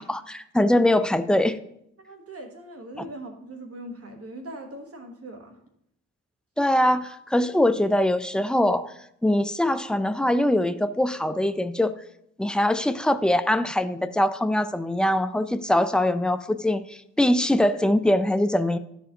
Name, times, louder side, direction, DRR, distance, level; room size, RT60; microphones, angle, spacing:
voice 1, 0.0-1.6 6.6-8.9 9.2-12.0 12.4-18.8, left 1 dB, 5° left, 11 dB, 0.4 m, -22 dB
voice 2, 2.0-5.6, right 1 dB, 50° right, 4 dB, 1.1 m, -40 dB
12.0 x 4.4 x 2.8 m, 0.75 s
cardioid pair, 70°, 31 cm